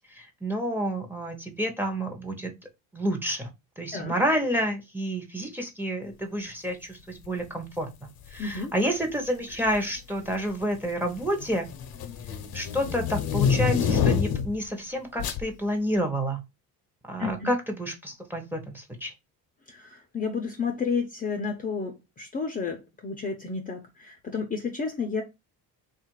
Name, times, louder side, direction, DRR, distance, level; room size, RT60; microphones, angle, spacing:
voice 1, 0.1-2.5 2.9-3.5 3.8-11.7 12.5-16.4 17.0-19.1, equal, 5° right, 0.8 m, -29 dB
sound 1, 8.3-8.6 9.5-10.0 10.3-14.6 15.2-15.5, left 7 dB, 65° left, 0.7 m, -27 dB
voice 2, 8.4-8.7 17.2-17.5 19.7-25.2, left 5 dB, 20° left, 0.6 m, -31 dB
3.6 x 2.5 x 4.5 m
cardioid pair, 135°, 39 cm